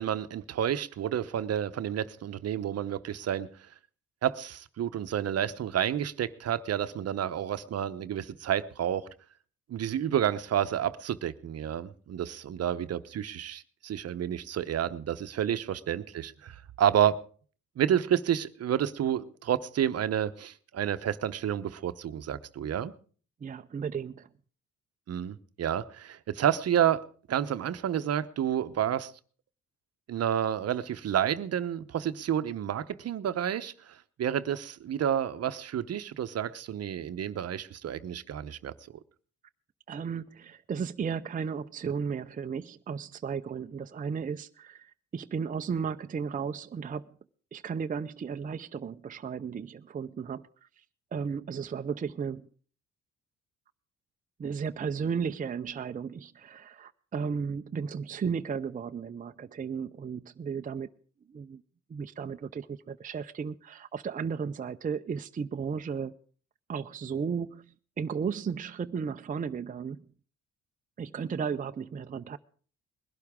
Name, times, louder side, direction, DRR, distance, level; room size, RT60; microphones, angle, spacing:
voice 1, 0.0-3.5 4.2-9.1 9.7-17.2 17.8-22.9 25.1-29.1 30.1-38.7, right 10 dB, 55° right, 0.8 m, -30 dB
voice 2, 23.4-24.3 39.9-47.1 47.5-50.5 51.1-52.5 54.4-60.9 61.3-61.6 61.9-66.1 66.7-67.6 68.0-70.0 71.0-72.4, right 6 dB, 25° right, 0.5 m, -34 dB
20.5 x 12.0 x 3.6 m
cardioid pair, 90°, 30 cm